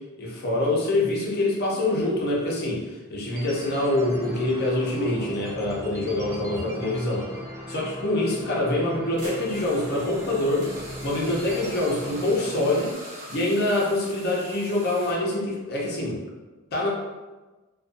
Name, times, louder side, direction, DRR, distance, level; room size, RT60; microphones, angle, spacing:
voice 1, 0.2-7.3 7.7-10.7 11.0-12.9 13.3-16.2 16.7-16.9, left 2 dB, 50° left, -3 dB, 0.6 m, -25 dB
sound 1, 3.3-12.9, right 1 dB, 15° right, 0.3 m, -38 dB
sound 2, 9.2-15.1, right 1 dB, 35° right, 1.0 m, -42 dB
2.5 x 2.3 x 2.5 m, 1.2 s
head